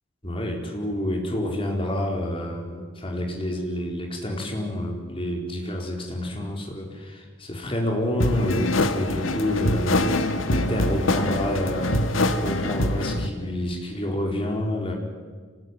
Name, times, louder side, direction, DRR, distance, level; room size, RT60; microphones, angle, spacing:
voice 1, 0.2-12.0 12.4-14.9, left 1 dB, 25° left, 1 dB, 4.1 m, -28 dB
sound 1, 8.2-13.3, left 1 dB, 80° left, 1.7 m, -24 dB
25.5 x 19.5 x 9.5 m, 1.5 s
head